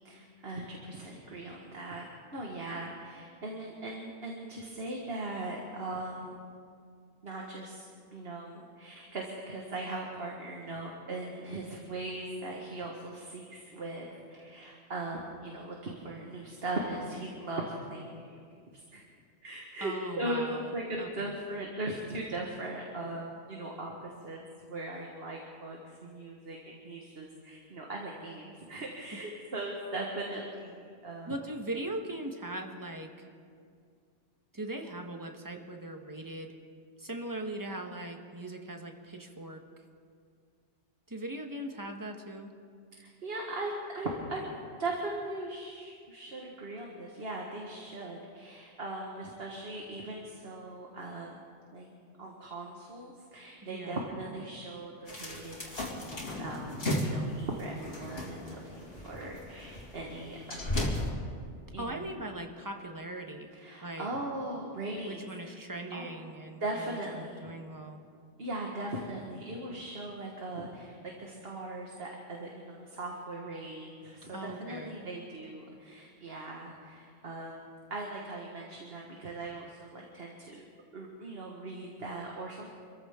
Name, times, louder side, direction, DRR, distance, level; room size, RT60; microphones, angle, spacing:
voice 1, 0.0-6.4 7.2-18.4 18.7-19.0 19.4-24.4 24.7-31.3 43.0-44.4 44.8-51.4 51.7-51.9 52.2-60.9 61.7-62.2 63.5-65.6 65.9-66.1 66.6-67.5 68.4-77.6 77.9-80.6 80.9-82.7, right 2 dB, 55° right, -1 dB, 1.8 m, -39 dB
voice 2, 19.8-21.3 31.3-33.1 34.5-36.5 37.0-39.6 41.1-42.5 53.6-54.1 61.8-63.5 63.8-64.1 65.0-68.0 74.3-75.0, right 1 dB, 15° right, 3 dB, 1.2 m, -40 dB
sound 1, 55.1-61.1, left 1 dB, 60° left, 2.6 m, -35 dB
26.5 x 14.5 x 3.7 m, 2.3 s
omnidirectional pair, 1.2 m